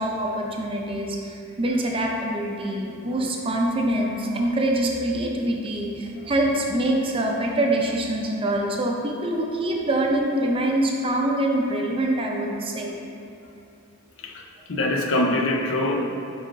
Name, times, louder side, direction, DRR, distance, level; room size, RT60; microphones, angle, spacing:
voice 1, 0.0-12.9, right 1 dB, 25° right, 0 dB, 0.6 m, -25 dB
voice 2, 14.7-16.0, left 1 dB, 60° left, 2 dB, 0.6 m, -23 dB
5.6 x 4.9 x 3.6 m, 2.6 s
head